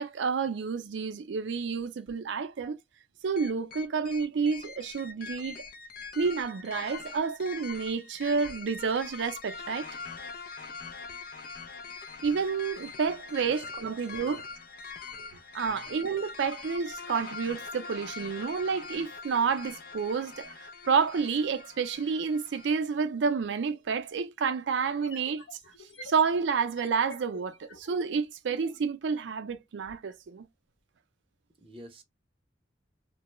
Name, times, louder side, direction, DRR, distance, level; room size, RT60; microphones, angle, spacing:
voice 1, 0.0-2.8 3.2-5.6 6.2-9.9 12.2-14.5 15.2-15.3 15.5-20.5 20.9-25.4 26.0-30.5, right 5 dB, 70° right, 0.4 m, -29 dB
sound 1, 3.4-22.8, left 5 dB, 50° left, 0.4 m, -43 dB
voice 2, 13.4-13.9 14.2-14.4 15.7-16.0 31.6-32.0, right 2 dB, 30° right, 0.6 m, -49 dB
sound 2, 24.8-28.8, left 2 dB, 75° left, 0.9 m, -48 dB
2.2 x 2.0 x 2.9 m
head